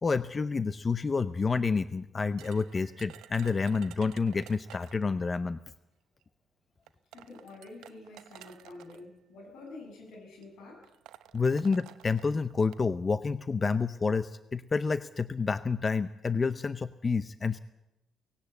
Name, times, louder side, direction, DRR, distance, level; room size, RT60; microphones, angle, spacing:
voice 1, 0.0-5.6 11.3-17.6, left 4 dB, 30° left, 13 dB, 0.6 m, -29 dB
sound 1, 2.4-5.1 6.2-6.3 6.9-9.0 9.9-10.1 10.4-10.5 10.8-12.9, right 12 dB, 90° right, 0.8 m, -52 dB
voice 2, 7.1-10.9, left 2 dB, 80° left, 3 dB, 7.4 m, -48 dB
18.5 x 16.5 x 8.3 m, 0.95 s
cardioid pair, 90°, 0 cm